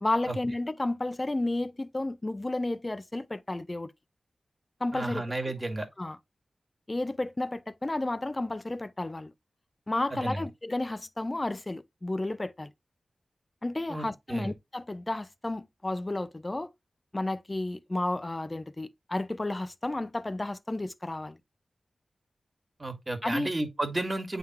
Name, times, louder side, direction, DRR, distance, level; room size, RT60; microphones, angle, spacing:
voice 1, 0.0-3.9 4.8-5.5 6.0-6.2 6.9-9.3 9.9-12.7 13.6-16.7 17.1-21.4 23.2-23.5, left 2 dB, 30° left, 0.6 m, -32 dB
voice 2, 4.9-5.9 10.2-10.4 13.9-14.5 22.8-24.4, right 2 dB, 30° right, 2.0 m, -32 dB
9.2 x 3.7 x 3.0 m
wide cardioid pair, 65°, 0 cm